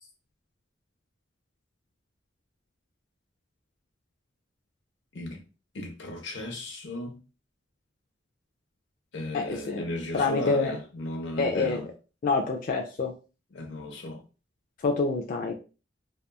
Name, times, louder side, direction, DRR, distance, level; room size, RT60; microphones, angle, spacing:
voice 1, 5.7-7.2 9.1-11.9 13.5-14.2, left 1 dB, 80° left, 0.7 m, -35 dB
voice 2, 9.3-9.8 10.1-10.8 11.4-11.8 12.2-13.1 14.8-15.5, left 3 dB, 50° left, 0.4 m, -26 dB
2.8 x 2.3 x 2.2 m
head